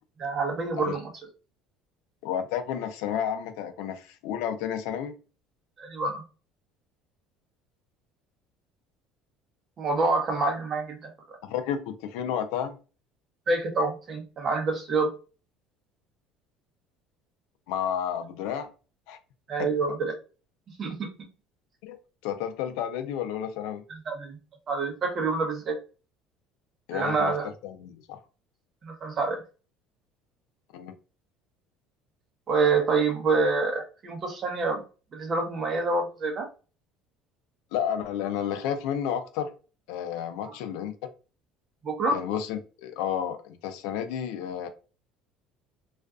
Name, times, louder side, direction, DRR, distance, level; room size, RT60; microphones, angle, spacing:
voice 1, 0.2-1.0 5.8-6.2 9.8-11.4 13.5-15.1 19.5-20.1 20.8-21.1 23.9-24.4 24.7-25.8 26.9-27.5 28.8-29.4 32.5-34.8 35.1-36.5 40.5-40.6 41.8-42.2, right 3 dB, 35° right, 4 dB, 0.8 m, -27 dB
voice 2, 2.2-5.1 11.5-12.8 17.7-18.7 19.1-19.2 19.6-19.7 21.8-22.0 22.2-23.8 26.9-28.2 30.7-30.9 37.7-39.5 39.9-40.9 42.1-44.7, left 9 dB, 80° left, 8 dB, 0.5 m, -31 dB
2.4 x 2.3 x 2.3 m, 0.34 s
cardioid pair, 130°, 0 cm